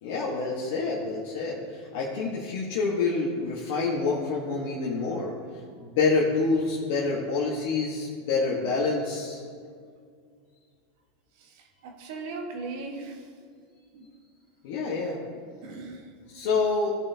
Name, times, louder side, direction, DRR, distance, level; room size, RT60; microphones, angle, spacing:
voice 1, 0.0-5.3 5.8-9.4 14.6-15.2 16.3-17.0, left 4 dB, 70° left, -4 dB, 1.4 m, -27 dB
voice 2, 11.4-13.3 13.9-14.0 15.6-16.1, right 3 dB, 65° right, 2 dB, 1.5 m, -38 dB
15.0 x 5.5 x 2.9 m, 2.1 s
hypercardioid pair, 105°, 0 cm